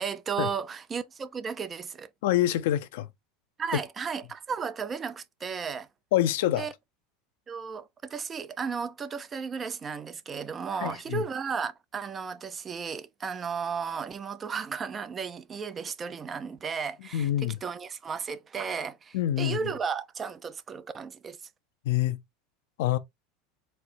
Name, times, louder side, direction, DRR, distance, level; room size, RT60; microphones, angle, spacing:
voice 1, 0.0-2.1 3.6-5.9 6.6-6.7 7.5-21.4, right 6 dB, 30° right, 0.6 m, -34 dB
voice 2, 2.2-3.1 3.7-3.8 6.1-6.7 10.8-11.2 17.1-17.6 19.1-19.7 21.8-22.2 22.8-23.0, left 13 dB, 75° left, 0.6 m, -26 dB
4.4 x 2.0 x 4.0 m
hypercardioid pair, 100°, 0 cm